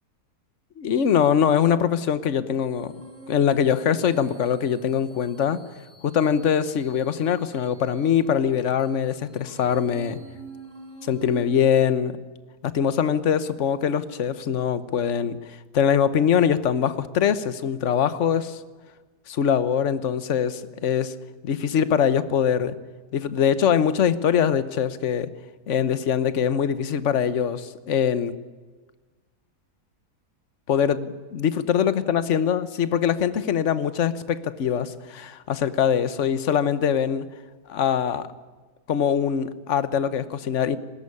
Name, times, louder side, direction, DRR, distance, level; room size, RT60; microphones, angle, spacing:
voice 1, 0.8-2.9 3.3-5.6 6.0-10.2 11.0-12.1 12.6-15.4 15.7-18.6 19.3-21.1 21.4-22.8 23.1-25.3 25.7-28.3 30.7-37.2 37.7-38.3 38.9-40.8, left 8 dB, 50° left, 14 dB, 1.3 m, -23 dB
sound 1, 2.6-11.7, right 3 dB, 10° right, 4.4 m, -46 dB
20.5 x 18.5 x 9.8 m, 1.3 s
omnidirectional pair, 1.7 m